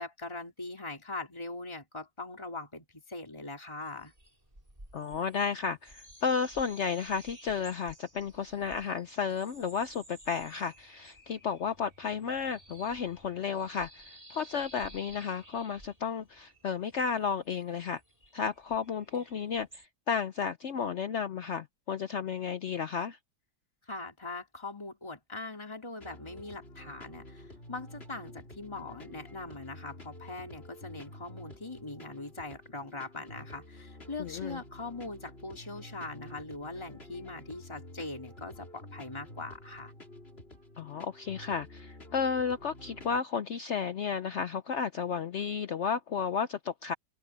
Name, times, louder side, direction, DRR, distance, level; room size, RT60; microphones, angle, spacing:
voice 1, 0.0-4.1 23.9-39.9, left 2 dB, 15° left, 3.5 m, -41 dB
sound 1, 3.8-19.8, right 1 dB, 20° right, 6.5 m, -55 dB
voice 2, 4.9-18.0 18.3-23.2 34.2-34.6 40.8-46.9, left 6 dB, 85° left, 0.6 m, -33 dB
sound 2, 26.0-43.2, left 1 dB, 30° left, 3.8 m, -49 dB
omnidirectional pair, 2.1 m